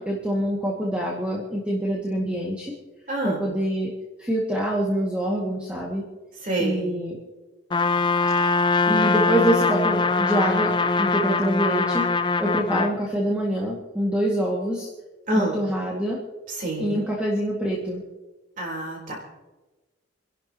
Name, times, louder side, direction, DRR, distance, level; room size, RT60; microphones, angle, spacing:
voice 1, 0.0-2.7 3.2-3.9 4.2-6.0 6.6-7.2 8.9-12.1 12.4-14.9 15.3-16.2 16.8-18.0, equal, 5° right, -4 dB, 2.0 m, -25 dB
voice 2, 3.1-3.5 6.4-6.8 15.3-15.6 16.5-17.0 18.6-19.2, right 1 dB, 40° right, -2 dB, 3.9 m, -27 dB
Trumpet, 7.7-13.0, left 4 dB, 25° left, 0.4 m, -22 dB
29.0 x 11.5 x 3.0 m, 1.2 s
head